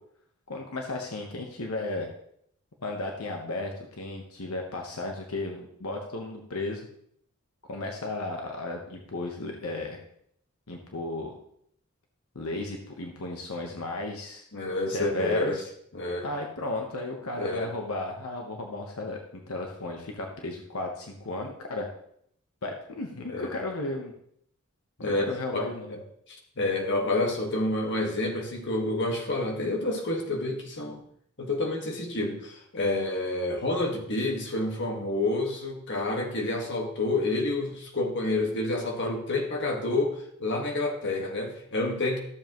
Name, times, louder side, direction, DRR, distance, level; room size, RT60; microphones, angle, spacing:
voice 1, 0.5-2.1 2.8-6.9 7.7-10.0 10.7-11.3 12.3-14.4 14.9-15.6 16.2-21.9 22.6-24.1 25.0-26.0, left 2 dB, 80° left, 2 dB, 1.1 m, -34 dB
voice 2, 14.5-15.6 15.9-16.3 17.4-17.7 23.3-23.6 25.0-26.0 26.6-31.0 31.4-42.2, left 2 dB, 55° left, 1 dB, 1.6 m, -29 dB
13.5 x 7.2 x 3.1 m, 0.68 s
head